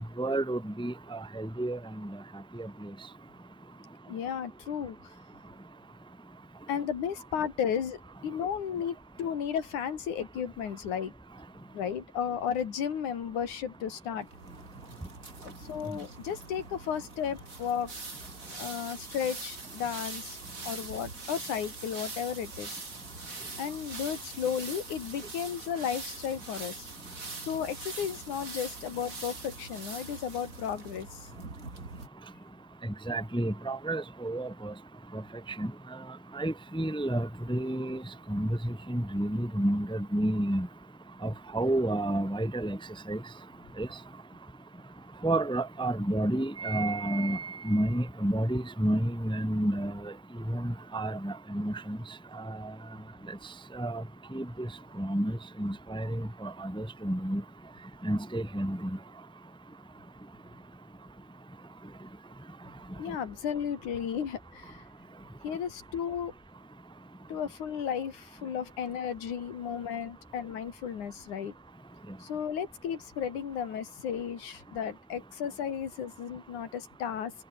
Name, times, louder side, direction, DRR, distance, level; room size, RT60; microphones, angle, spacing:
voice 1, 0.0-2.2 2.6-2.9 32.8-34.7 35.1-35.2 35.6-35.7 36.3-38.0 38.3-40.7 41.2-42.8 43.1-43.2 43.8-43.9 45.2-50.1 50.5-52.0 52.3-52.7 53.7-54.0 54.3-54.7 55.0-57.4 58.0-59.0, right 1 dB, ahead, 1.4 m, -30 dB
voice 2, 4.1-5.0 6.7-11.1 11.7-14.3 15.4-17.9 18.5-20.4 20.7-22.8 23.6-26.9 27.4-31.3 63.0-64.8 65.4-66.3 67.3-71.5 72.2-77.3, left 8 dB, 65° left, 4.0 m, -34 dB
sound 1, 14.3-32.1, right 3 dB, 25° right, 3.9 m, -43 dB
omnidirectional pair, 3.8 m